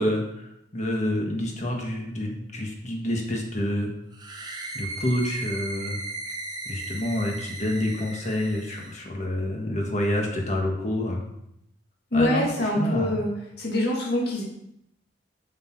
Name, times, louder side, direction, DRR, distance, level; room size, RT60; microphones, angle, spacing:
voice 1, 0.0-3.9 4.7-6.0 6.6-11.2 12.1-13.2, left 1 dB, 40° left, 0 dB, 1.5 m, -28 dB
sound 1, 4.1-9.0, right 2 dB, 20° right, 0.9 m, -36 dB
voice 2, 12.1-14.4, left 1 dB, 55° left, -3 dB, 2.3 m, -25 dB
7.9 x 6.6 x 4.6 m, 0.79 s
head